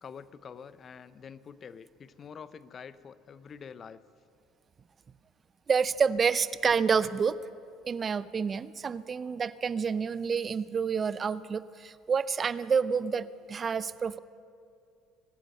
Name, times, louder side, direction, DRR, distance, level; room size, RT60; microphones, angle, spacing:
voice 1, 0.0-4.0, left 6 dB, 40° left, 16 dB, 0.6 m, -46 dB
voice 2, 5.7-7.4 7.9-14.2, right 6 dB, 35° right, 17 dB, 0.5 m, -28 dB
23.0 x 8.8 x 6.6 m, 2.4 s
hypercardioid pair, 70°, 0 cm